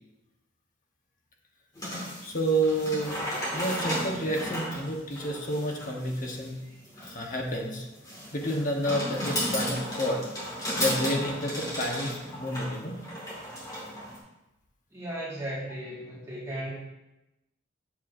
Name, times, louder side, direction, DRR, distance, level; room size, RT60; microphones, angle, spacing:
sound 1, 1.8-14.2, equal, 20° left, 2.2 m, -34 dB
voice 1, 2.2-3.2 3.5-6.6 7.0-7.9 8.3-10.2 10.7-13.0, equal, 45° left, 0 dB, 1.2 m, -30 dB
voice 2, 14.9-16.7, right 1 dB, 15° right, -8 dB, 1.9 m, -36 dB
8.1 x 7.4 x 2.7 m, 0.96 s
head